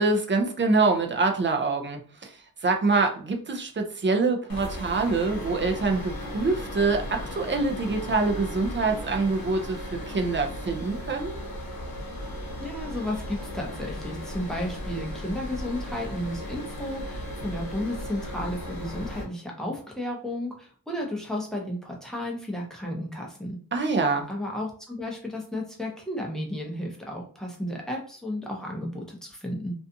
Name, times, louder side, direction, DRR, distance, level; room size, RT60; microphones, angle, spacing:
voice 1, 0.0-2.3 2.6-11.4 23.7-24.3, right 3 dB, 35° right, 4 dB, 0.4 m, -25 dB
sound 1, 4.5-19.2, left 1 dB, 90° left, 0.8 m, -36 dB
voice 2, 12.6-23.6 24.3-29.7, left 1 dB, ahead, -1 dB, 0.7 m, -33 dB
2.5 x 2.3 x 2.6 m, 0.43 s
wide cardioid pair, 130°, 35 cm